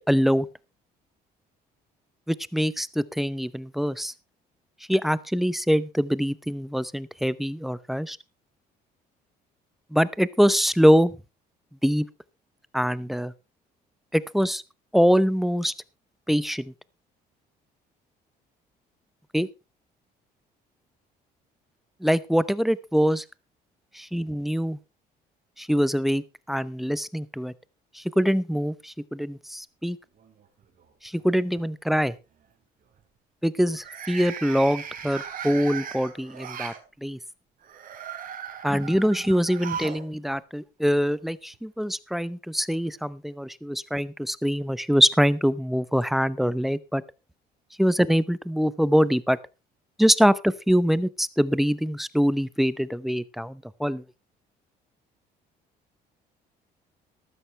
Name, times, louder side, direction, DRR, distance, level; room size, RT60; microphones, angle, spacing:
voice 1, 0.1-0.5 2.3-4.1 4.9-8.2 9.9-11.2 11.8-12.1 12.7-13.3 14.1-14.6 14.9-15.7 16.3-16.7 19.3-19.5 22.0-23.2 23.9-24.8 25.6-27.5 27.9-30.0 31.0-32.2 33.4-36.7 37.0-37.2 38.6-47.0 47.8-49.4 50.0-54.0, equal, ahead, 17 dB, 0.7 m, -24 dB
sound 1, 30.2-30.8 31.2-31.6 33.7-36.8 37.6-40.0 40.3-40.4 41.5-41.6, right 8 dB, 55° right, 3.2 m, -38 dB
14.0 x 12.5 x 3.3 m, 0.29 s
cardioid pair, 110°, 17 cm